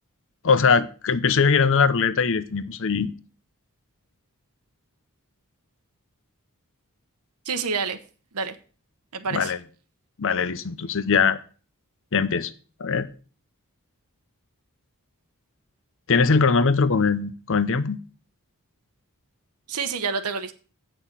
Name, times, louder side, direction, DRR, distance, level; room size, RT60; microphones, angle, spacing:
voice 1, 0.4-3.1 9.3-9.6 10.2-11.4 12.1-12.5 12.8-13.1 16.1-18.0, left 5 dB, 60° left, 0.7 m, -21 dB
voice 2, 7.5-8.0 8.3-8.5 9.1-9.5 19.7-20.5, right 5 dB, 85° right, 1.0 m, -28 dB
8.1 x 6.1 x 7.4 m
head